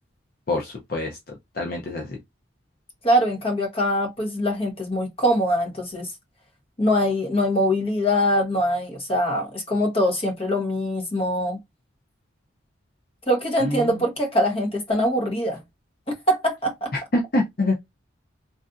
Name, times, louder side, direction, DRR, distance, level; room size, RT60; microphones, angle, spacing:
voice 1, 0.5-1.2 1.5-2.2 13.6-14.0 17.1-17.8, left 2 dB, 50° left, 0.6 m, -25 dB
voice 2, 3.0-6.1 6.8-11.6 13.3-15.6 16.3-16.9, equal, 30° left, 1.1 m, -23 dB
3.3 x 2.5 x 2.5 m
head